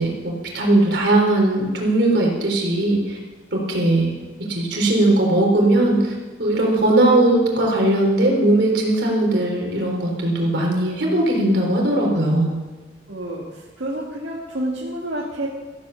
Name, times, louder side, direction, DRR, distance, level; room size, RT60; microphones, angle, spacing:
voice 1, 0.0-3.2 3.5-4.1 4.4-12.6, right 1 dB, 65° right, 0 dB, 3.9 m, -19 dB
voice 2, 13.1-13.4 13.8-15.5, right 1 dB, 85° right, -5 dB, 2.2 m, -28 dB
15.0 x 8.4 x 7.1 m, 1.3 s
head